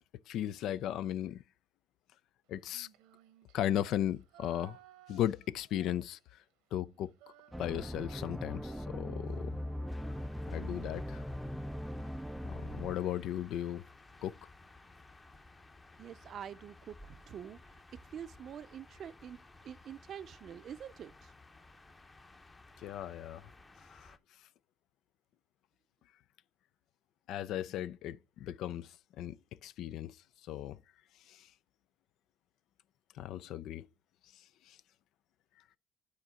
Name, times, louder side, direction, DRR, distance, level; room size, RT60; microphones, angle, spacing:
voice 1, 0.3-1.4 2.5-2.9 3.5-4.8 5.1-6.4 6.7-7.1 7.6-9.6 10.5-11.2 12.5-13.8 14.2-14.5 22.8-23.5 23.9-24.2 27.3-29.4 29.6-30.2 30.5-30.8 31.3-31.5 33.1-33.9 34.4-34.8, left 11 dB, 70° left, 0.4 m, -36 dB
Female singing, 2.6-6.5 6.8-11.1, right 12 dB, 85° right, 1.0 m, -61 dB
sound 1, 7.5-13.0, equal, ahead, 0.4 m, -40 dB
sound 2, 9.9-24.2, left 2 dB, 20° left, 0.9 m, -57 dB
voice 2, 16.0-17.7 18.1-19.4 19.6-21.3, right 9 dB, 55° right, 0.6 m, -46 dB
8.8 x 4.0 x 5.5 m
supercardioid pair, 85°, 0 cm